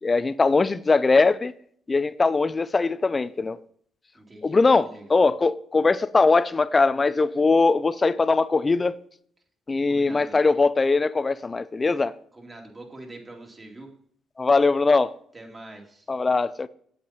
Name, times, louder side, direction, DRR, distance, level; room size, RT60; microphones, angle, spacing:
voice 1, 0.0-1.5 1.9-3.6 4.4-9.0 9.7-12.1 14.4-15.1 16.1-16.7, left 3 dB, 25° left, 0.4 m, -21 dB
voice 2, 4.1-5.2 9.9-10.4 12.3-13.9 15.3-16.1, right 2 dB, 25° right, 2.6 m, -44 dB
8.5 x 8.2 x 4.4 m
cardioid pair, 80°, 0 cm